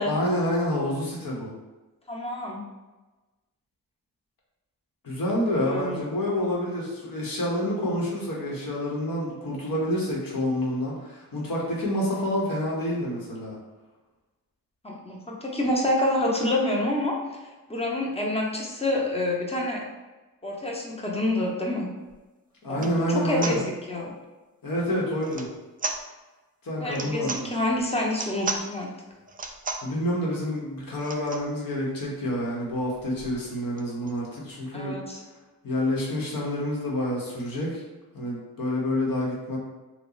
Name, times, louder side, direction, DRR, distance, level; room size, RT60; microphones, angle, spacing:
voice 1, 0.0-1.5 5.0-13.6 22.6-23.6 24.6-25.5 26.6-27.5 29.8-35.0 35.6-37.8 38.1-39.6, left 1 dB, 70° left, -4 dB, 1.2 m, -28 dB
voice 2, 2.1-2.6 5.6-6.0 14.8-17.1 17.7-19.8 20.4-21.9 22.7-24.1 26.8-28.9 34.7-35.2, left 1 dB, 15° left, -1 dB, 0.8 m, -27 dB
sound 1, 22.1-22.2 22.7-23.0 23.4-23.6 25.2-25.5 25.8-26.0 26.9-27.4 28.1-28.6 29.3-29.9 31.0-31.5 32.0-32.1 32.3-32.4 32.7-34.2, right 4 dB, 25° right, 0.4 m, -34 dB
2.9 x 2.3 x 3.9 m, 1.2 s
cardioid pair, 65°, 35 cm